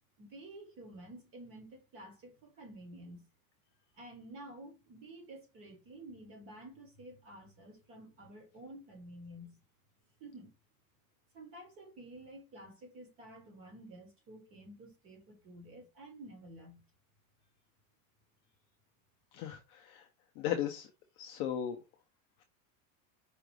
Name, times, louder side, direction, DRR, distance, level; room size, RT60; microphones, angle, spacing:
voice 1, 0.2-3.3 4.0-9.6 10.2-10.5 11.3-16.8, right 1 dB, 30° right, 1.5 m, -51 dB
voice 2, 19.3-20.1 20.4-20.9 21.2-21.8, left 10 dB, 30° left, 0.4 m, -36 dB
5.0 x 2.2 x 4.6 m
supercardioid pair, 160°, 43 cm